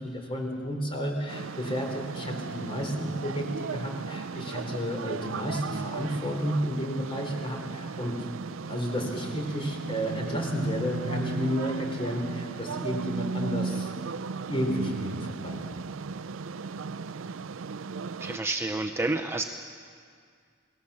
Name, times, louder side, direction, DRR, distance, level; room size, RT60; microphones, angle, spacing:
voice 1, 0.0-8.2 8.7-13.9 14.5-15.9, equal, 25° left, 2 dB, 4.3 m, -32 dB
sound 1, 1.3-18.4, right 4 dB, 70° right, 0.5 m, -36 dB
voice 2, 18.2-19.4, right 2 dB, 15° right, 5 dB, 0.7 m, -29 dB
29.5 x 19.0 x 7.2 m, 2.2 s
head